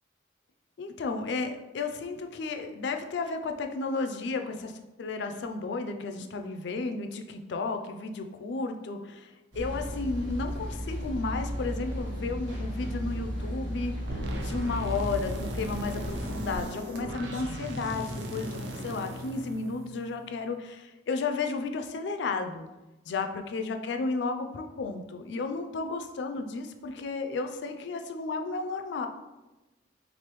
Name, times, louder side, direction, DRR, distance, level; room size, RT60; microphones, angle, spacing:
voice 1, 0.8-4.7 5.0-22.7 23.1-29.1, left 3 dB, 70° left, 6 dB, 0.3 m, -33 dB
sound 1, 9.5-16.6, equal, 80° right, 1.4 m, -35 dB
sound 2, 14.1-20.2, right 1 dB, 65° right, 0.5 m, -37 dB
3.9 x 3.3 x 3.0 m, 1.1 s
head